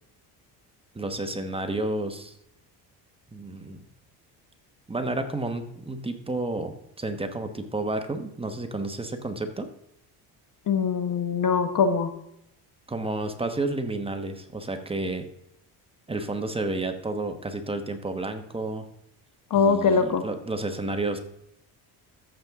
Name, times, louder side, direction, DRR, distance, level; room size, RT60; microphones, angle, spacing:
voice 1, 0.9-2.3 3.3-3.8 4.9-9.7 12.9-15.3 16.1-18.9 19.5-21.2, right 2 dB, 15° right, 6 dB, 1.1 m, -31 dB
voice 2, 10.7-12.1 19.5-20.2, left 5 dB, 50° left, 9 dB, 1.2 m, -22 dB
14.0 x 7.4 x 3.6 m, 0.77 s
cardioid pair, 115°, 40 cm